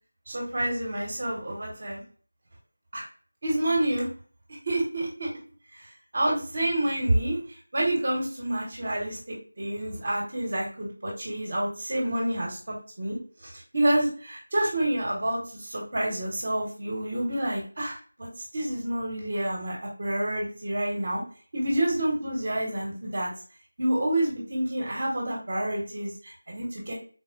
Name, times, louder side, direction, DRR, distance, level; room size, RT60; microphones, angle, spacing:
voice 1, 0.3-2.0 2.9-3.0 3.4-4.1 4.6-5.3 5.7-21.2 21.5-23.3 23.8-26.9, right 1 dB, 45° right, -2 dB, 1.0 m, -28 dB
4.0 x 2.0 x 2.5 m, 0.41 s
figure-of-eight pair, 170°, 0 cm